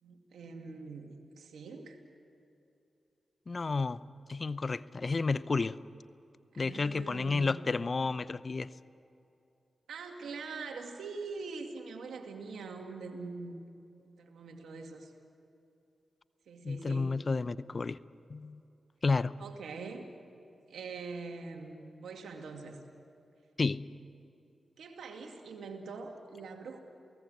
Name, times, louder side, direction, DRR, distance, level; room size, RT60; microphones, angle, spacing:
voice 1, 0.0-2.0 6.5-7.5 9.9-13.7 14.0-15.1 16.5-17.1 19.4-20.1 20.7-22.8 24.8-26.8, right 4 dB, 85° right, 3 dB, 2.5 m, -43 dB
voice 2, 3.5-4.0 4.3-5.8 6.6-8.7 16.6-18.0 18.3-18.6 19.0-19.3 23.6-23.9, left 4 dB, 50° left, 16 dB, 0.7 m, -31 dB
28.5 x 18.5 x 8.0 m, 2.7 s
supercardioid pair, 40°, 0 cm